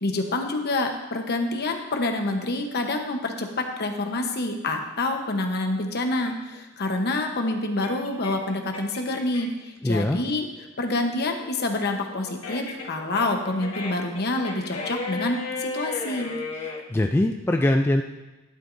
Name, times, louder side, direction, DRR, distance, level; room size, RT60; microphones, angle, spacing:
voice 1, 0.0-10.5 10.8-16.3, left 2 dB, 50° left, 4 dB, 1.0 m, -27 dB
sound 1, 6.2-9.6 10.0-16.8, left 3 dB, 75° left, 1.4 m, -35 dB
voice 2, 9.8-10.2 16.9-18.0, left 1 dB, 10° left, 4 dB, 0.3 m, -22 dB
11.5 x 9.2 x 2.6 m, 1.1 s
head